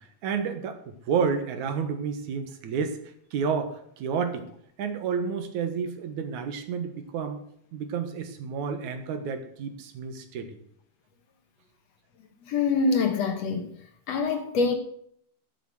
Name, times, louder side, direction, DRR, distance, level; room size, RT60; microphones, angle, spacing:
voice 1, 0.0-3.0 3.3-4.5 4.8-7.4 7.7-10.6, right 6 dB, 80° right, 2.8 m, -30 dB
voice 2, 12.4-13.7 14.1-14.7, left 4 dB, 65° left, 2.2 m, -25 dB
12.0 x 8.1 x 6.5 m
omnidirectional pair, 3.4 m